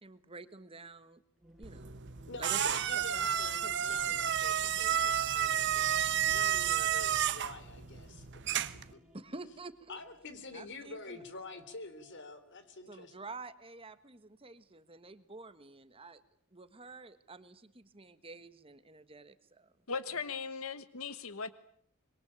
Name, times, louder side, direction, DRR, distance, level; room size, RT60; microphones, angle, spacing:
voice 1, 0.0-1.2 1.6-2.0 2.4-4.2 9.1-10.0 10.5-11.2 12.9-16.2 16.5-19.7, right 3 dB, 25° right, 12 dB, 1.4 m, -49 dB
sound 1, 1.4-13.2, equal, ahead, 7.8 m, -61 dB
sound 2, 1.6-8.9, right 9 dB, 55° right, 1.2 m, -31 dB
voice 2, 2.3-8.3 8.9-9.0 9.9-13.1, left 3 dB, 55° left, 11 dB, 3.5 m, -47 dB
voice 3, 19.9-21.5, left 5 dB, 75° left, 13 dB, 1.3 m, -38 dB
26.0 x 23.0 x 8.8 m, 0.65 s
head